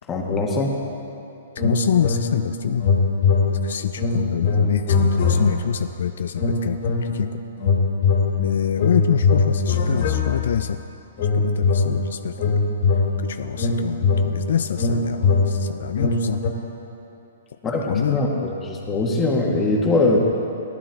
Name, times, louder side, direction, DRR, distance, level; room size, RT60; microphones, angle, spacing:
voice 1, 0.1-0.7 17.6-20.2, left 2 dB, 15° left, -1 dB, 1.5 m, -22 dB
voice 2, 1.6-2.9 3.5-7.4 8.4-10.8 11.3-12.7 13.2-16.4 17.9-18.2, left 8 dB, 70° left, 10 dB, 0.3 m, -26 dB
sound 1, 1.6-2.5 2.8-5.8 6.4-7.2 7.6-10.7 11.2-16.5, left 4 dB, 50° left, 1.9 m, -21 dB
15.0 x 11.0 x 3.5 m, 2.9 s
hypercardioid pair, 145°, 0 cm